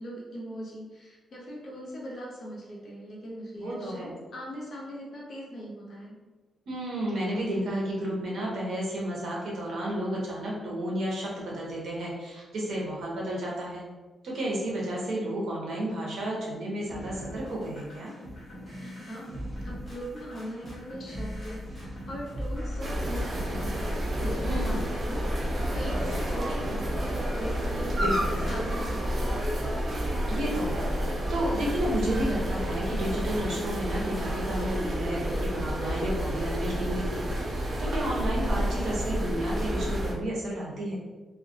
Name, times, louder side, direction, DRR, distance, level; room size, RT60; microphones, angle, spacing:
voice 1, 0.0-6.1 18.8-29.5, equal, 50° left, -4 dB, 0.6 m, -40 dB
voice 2, 3.6-4.1 6.7-13.8 14.2-18.1 24.5-24.9 27.9-28.4 30.3-41.0, right 1 dB, 75° right, -4 dB, 0.7 m, -32 dB
sound 1, 16.9-28.9, equal, 25° left, 0.9 m, -44 dB
sound 2, 19.3-20.8 21.1-23.8 24.1-25.2, equal, ahead, 0.9 m, -39 dB
sound 3, 22.8-40.1, equal, 40° right, 0.5 m, -30 dB
2.3 x 2.1 x 2.6 m, 1.2 s
wide cardioid pair, 140°, 0 cm